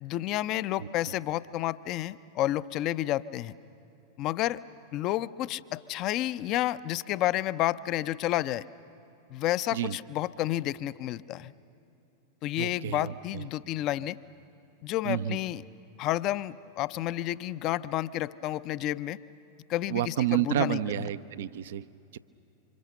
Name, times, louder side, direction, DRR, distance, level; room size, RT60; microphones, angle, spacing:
voice 1, 0.0-3.5 4.2-4.6 4.9-8.6 9.3-11.5 12.4-14.2 14.8-15.6 16.0-19.2 19.7-21.1, left 14 dB, 40° left, 16 dB, 0.5 m, -30 dB
voice 2, 12.6-13.5 15.0-15.4 19.9-22.2, right 12 dB, 60° right, 15 dB, 0.5 m, -30 dB
28.0 x 25.5 x 6.7 m, 2.8 s
figure-of-eight pair, 90°, 0 cm